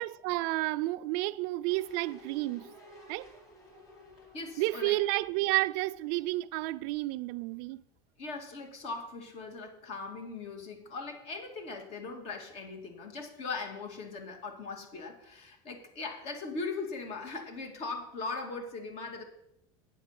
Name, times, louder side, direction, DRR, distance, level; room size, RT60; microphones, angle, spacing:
voice 1, 0.0-2.7 3.1-3.3 4.6-7.8, right 19 dB, 70° right, 0.4 m, -31 dB
sound 1, 1.7-6.6 6.9-7.0, equal, 30° left, 3.8 m, -54 dB
voice 2, 4.3-5.0 8.2-19.2, left 3 dB, 55° left, 2.4 m, -39 dB
9.6 x 7.7 x 5.9 m
supercardioid pair, 120°, 12 cm